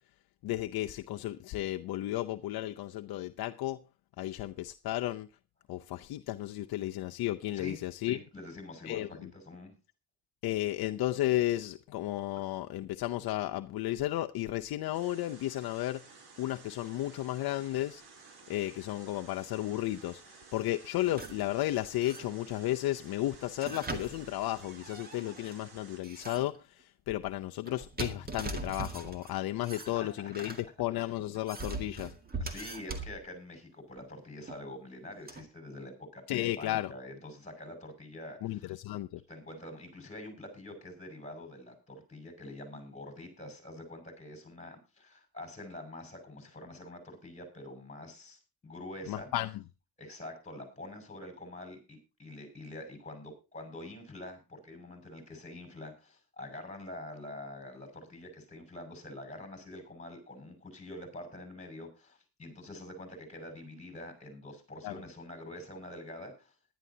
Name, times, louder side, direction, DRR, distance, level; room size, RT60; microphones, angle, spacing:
voice 1, 0.4-3.8 4.2-5.3 5.7-8.2 8.8-9.1 10.4-16.0 16.4-18.0 18.5-20.2 20.5-26.6 27.1-32.1 36.3-36.9 38.4-39.2 49.1-49.5 64.8-64.9, left 15 dB, 70° left, 0.7 m, -33 dB
voice 2, 8.0-9.8 29.8-30.6 30.9-31.1 32.4-38.8 39.3-49.3 50.0-66.5, left 1 dB, 20° left, 6.0 m, -46 dB
sound 1, 14.9-26.0, right 4 dB, 75° right, 4.0 m, -54 dB
sound 2, 21.0-21.5 22.0-22.6 23.5-25.6 26.0-26.6 27.7-29.3 29.6-30.6 31.2-33.2 34.5-34.6 35.3-35.4, right 3 dB, 25° right, 2.0 m, -41 dB
19.5 x 11.5 x 2.8 m
cardioid pair, 135°, 39 cm